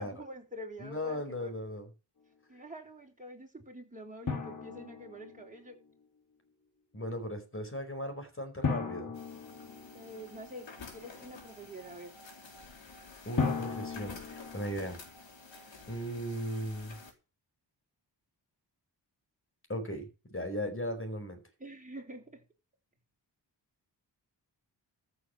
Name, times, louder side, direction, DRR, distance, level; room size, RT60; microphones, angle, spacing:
voice 1, 0.0-1.5 2.5-5.8 9.9-12.1 21.6-22.4, equal, 15° right, 0 dB, 4.6 m, -46 dB
voice 2, 0.8-1.9 6.9-9.1 13.2-15.0 15.9-17.0 19.7-21.4, equal, 30° left, 7 dB, 4.8 m, -37 dB
Drum, 4.3-5.7 8.6-10.4 13.4-15.0, left 5 dB, 45° left, 3.3 m, -36 dB
sound 1, 9.1-17.1, left 3 dB, 80° left, 3.9 m, -51 dB
14.0 x 7.0 x 7.2 m, 0.32 s
cardioid pair, 80°, 44 cm